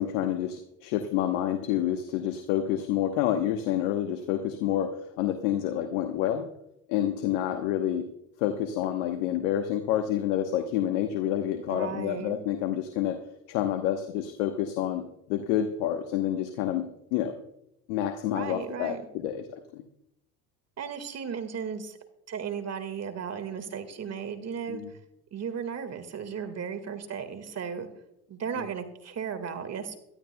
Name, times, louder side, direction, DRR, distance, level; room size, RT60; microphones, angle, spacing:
voice 1, 0.0-6.5 6.9-8.1 8.4-13.2 13.5-15.0 15.3-17.3 17.9-19.8 24.7-24.9 28.6-28.7, left 11 dB, 70° left, 6 dB, 1.1 m, -28 dB
voice 2, 11.7-12.4 18.3-19.0 20.8-22.0 22.3-24.8 25.3-27.9 28.3-30.0, right 7 dB, 35° right, 10 dB, 1.8 m, -35 dB
23.0 x 12.5 x 2.2 m, 0.81 s
hypercardioid pair, 80°, 45 cm